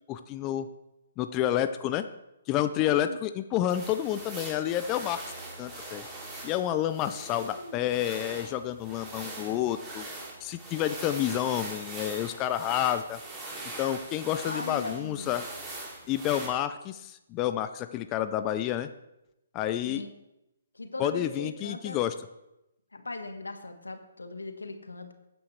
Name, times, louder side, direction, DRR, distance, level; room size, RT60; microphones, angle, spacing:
voice 1, 0.1-0.7 1.2-2.0 2.5-5.2 5.6-6.0 6.4-10.1 10.4-13.2 13.8-15.4 16.1-18.9 19.5-20.0 21.0-22.1, left 12 dB, 25° left, 10 dB, 0.5 m, -29 dB
voice 2, 2.8-3.2 7.0-8.0 14.4-15.3 19.8-20.1 20.7-22.0 22.9-25.1, left 2 dB, 90° left, 7 dB, 1.3 m, -39 dB
sound 1, 3.7-16.5, right 2 dB, 15° right, 2.7 m, -42 dB
14.0 x 9.2 x 3.3 m, 0.91 s
figure-of-eight pair, 140°, 0 cm